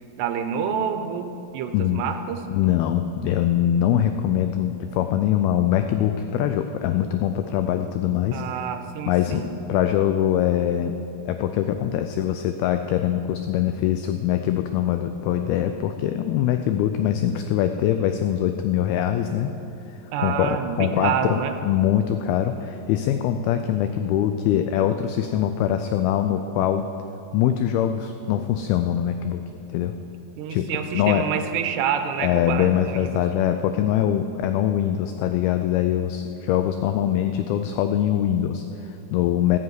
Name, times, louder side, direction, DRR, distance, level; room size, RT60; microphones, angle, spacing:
voice 1, 0.2-2.4 8.3-9.5 20.1-21.6 30.4-33.2, right 8 dB, 85° right, 8 dB, 2.9 m, -27 dB
voice 2, 1.7-2.1 2.5-8.4 9.1-10.9 11.3-19.5 20.2-26.9 27.3-29.4 29.7-30.0 30.5-31.3 32.2-39.6, left 10 dB, 85° left, 8 dB, 2.2 m, -23 dB
14.5 x 7.7 x 8.1 m, 2.9 s
omnidirectional pair, 4.9 m